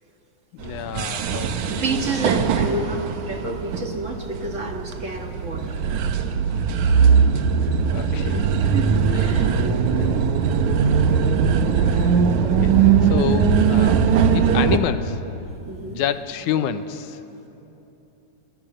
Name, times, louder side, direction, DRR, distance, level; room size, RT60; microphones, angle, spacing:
voice 1, 0.5-2.0 7.9-8.5 9.1-9.6 9.9-10.1 11.8-15.2 15.8-17.2, left 10 dB, 75° left, 11 dB, 2.2 m, -29 dB
sound 1, 0.6-14.8, right 6 dB, 70° right, 2.4 m, -20 dB
voice 2, 1.7-5.8 8.7-9.5 9.9-10.2 15.7-16.0, right 2 dB, 40° right, 3 dB, 1.1 m, -29 dB
29.0 x 20.0 x 7.7 m, 3.0 s
omnidirectional pair, 3.7 m